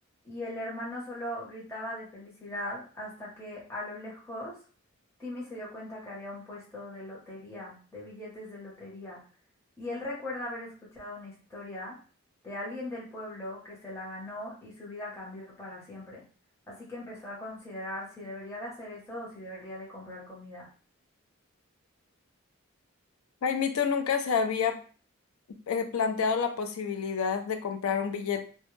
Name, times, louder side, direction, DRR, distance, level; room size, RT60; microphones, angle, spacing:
voice 1, 0.2-4.6 5.2-9.2 9.8-12.0 12.4-16.2 16.7-20.7, left 1 dB, 10° left, -6 dB, 0.8 m, -40 dB
voice 2, 23.4-24.8 25.5-28.5, left 6 dB, 80° left, 7 dB, 0.4 m, -28 dB
2.2 x 2.0 x 3.0 m, 0.40 s
head